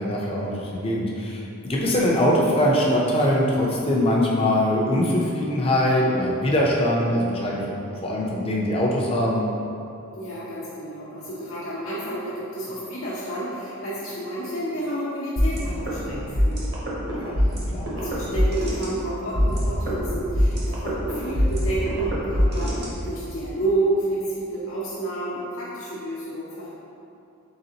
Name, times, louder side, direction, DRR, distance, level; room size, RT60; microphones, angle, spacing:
voice 1, 0.0-1.4 1.7-7.6 8.0-9.4 17.1-17.4 17.7-17.9, left 1 dB, 25° left, -3 dB, 0.5 m, -22 dB
voice 2, 10.1-16.7 17.4-17.5 17.9-26.7, right 1 dB, 70° left, -10 dB, 0.8 m, -30 dB
sound 1, 15.4-23.3, equal, 50° right, 0.8 m, -24 dB
4.0 x 3.5 x 2.8 m, 2.7 s
head